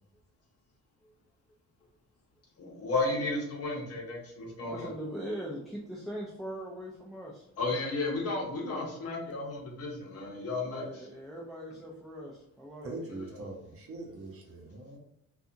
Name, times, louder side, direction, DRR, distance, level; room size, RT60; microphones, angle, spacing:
voice 1, 2.6-4.9 7.6-11.1, left 2 dB, 50° left, -1 dB, 0.8 m, -33 dB
voice 2, 4.6-7.4 10.6-13.0, right 1 dB, ahead, -4 dB, 0.3 m, -41 dB
voice 3, 12.8-15.0, right 2 dB, 45° right, 0 dB, 0.8 m, -42 dB
2.7 x 2.3 x 2.5 m, 0.79 s
cardioid pair, 145°, 31 cm